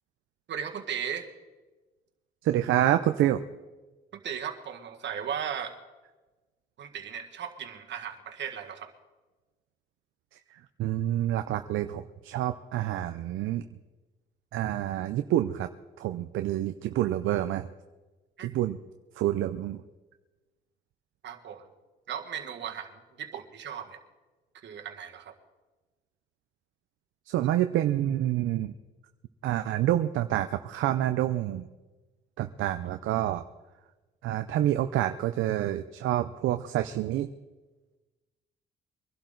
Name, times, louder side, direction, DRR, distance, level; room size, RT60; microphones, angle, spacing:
voice 1, 0.5-1.3 4.1-5.8 6.8-8.9 18.4-18.5 21.2-21.7 22.1-24.0 24.5-25.3, right 8 dB, 65° right, 4 dB, 1.8 m, -36 dB
voice 2, 2.4-3.4 10.8-13.6 14.5-15.7 16.0-17.7 18.4-18.8 19.2-19.8 27.3-28.7 29.4-31.7 32.4-33.4 34.2-37.3, right 13 dB, 80° right, 8 dB, 0.6 m, -27 dB
23.0 x 12.0 x 3.9 m, 1.2 s
cardioid pair, 90°, 20 cm